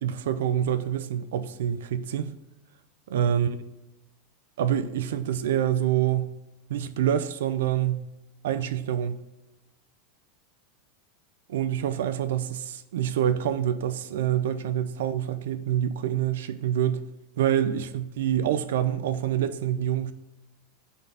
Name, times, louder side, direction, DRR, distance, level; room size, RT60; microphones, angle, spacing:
voice 1, 0.0-2.3 3.1-3.5 4.6-6.4 6.7-8.1 8.4-9.2 11.5-17.1 17.4-20.1, right 10 dB, 85° right, 0.5 m, -26 dB
5.5 x 3.9 x 5.5 m
supercardioid pair, 170°, 0 cm